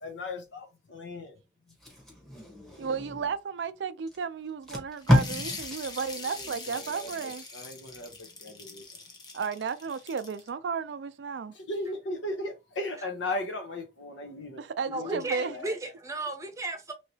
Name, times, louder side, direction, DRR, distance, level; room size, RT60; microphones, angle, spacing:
voice 1, 0.0-1.4 6.2-8.8 11.5-15.7, left 2 dB, 85° left, 0.9 m, -37 dB
Packing tape duct tape, 1.7-3.4 4.1-4.2 4.5-7.5 7.9-8.1, left 1 dB, 5° left, 0.9 m, -30 dB
voice 2, 2.8-7.4 9.3-11.5 14.6-15.5, right 5 dB, 75° right, 0.4 m, -33 dB
sound 1, 5.0-10.5, left 3 dB, 20° left, 0.6 m, -42 dB
voice 3, 14.9-16.9, right 2 dB, 15° right, 0.6 m, -34 dB
3.1 x 2.9 x 2.7 m
head